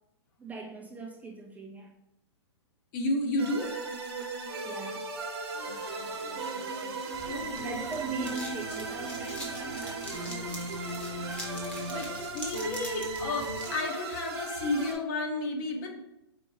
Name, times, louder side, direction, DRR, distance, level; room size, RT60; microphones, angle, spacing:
voice 1, 0.4-1.9 4.2-4.3 4.6-5.1 7.6-10.8 12.6-12.7, right 3 dB, 10° right, 0 dB, 0.4 m, -40 dB
voice 2, 2.9-3.7 7.3-7.7 11.9-16.0, left 2 dB, 45° left, 3 dB, 0.8 m, -32 dB
sound 1, 3.4-14.9, right 3 dB, 60° right, 0.9 m, -37 dB
sound 2, 5.4-12.3, right 3 dB, 85° right, 0.7 m, -45 dB
sound 3, 7.1-13.8, equal, 10° left, 0.9 m, -44 dB
4.6 x 2.2 x 4.4 m, 0.88 s
hypercardioid pair, 120°, 14 cm